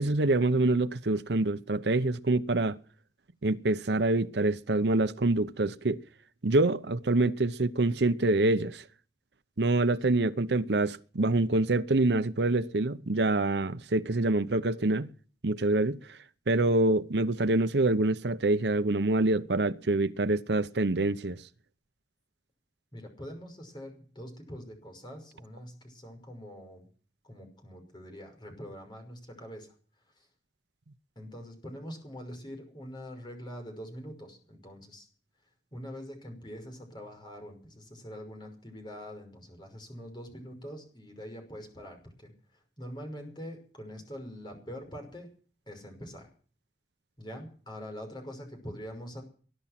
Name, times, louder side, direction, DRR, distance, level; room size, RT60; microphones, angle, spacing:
voice 1, 0.0-2.8 3.4-6.0 6.4-8.8 9.6-15.1 15.4-16.2 16.5-21.4, right 2 dB, 75° right, 0.8 m, -26 dB
voice 2, 22.9-26.9 27.2-29.7 31.2-35.1 35.7-42.3 42.8-45.3 45.7-46.3 47.2-49.2, equal, 25° left, 5.6 m, -44 dB
21.0 x 11.5 x 5.9 m
head